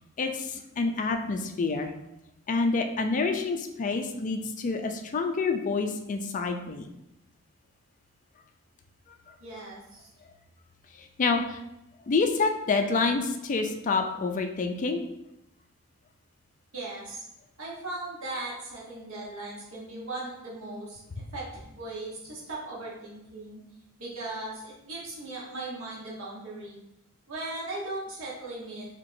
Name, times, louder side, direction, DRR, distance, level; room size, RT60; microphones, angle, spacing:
voice 1, 0.2-1.9 2.5-6.9 9.3-9.4 10.9-11.6 12.1-15.0, left 4 dB, 40° left, 5 dB, 0.4 m, -28 dB
voice 2, 9.4-10.1 16.7-17.2 17.6-21.0 21.3-23.6 24.0-26.8 27.3-28.9, right 2 dB, 70° right, -5 dB, 1.2 m, -38 dB
4.4 x 2.8 x 2.6 m, 0.85 s
head